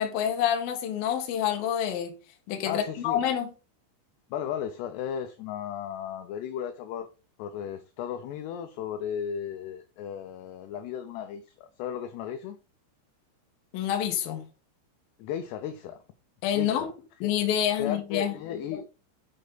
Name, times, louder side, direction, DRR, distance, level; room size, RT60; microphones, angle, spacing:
voice 1, 0.0-2.1 2.5-3.5 13.7-14.5 16.4-16.8 17.2-18.3, left 9 dB, 65° left, 2.7 m, -27 dB
voice 2, 2.7-3.2 4.3-7.1 7.4-12.6 15.2-16.0 16.5-16.9 17.2-17.3 17.8-18.9, left 9 dB, 80° left, 2.5 m, -35 dB
9.4 x 5.4 x 3.9 m
omnidirectional pair, 5.5 m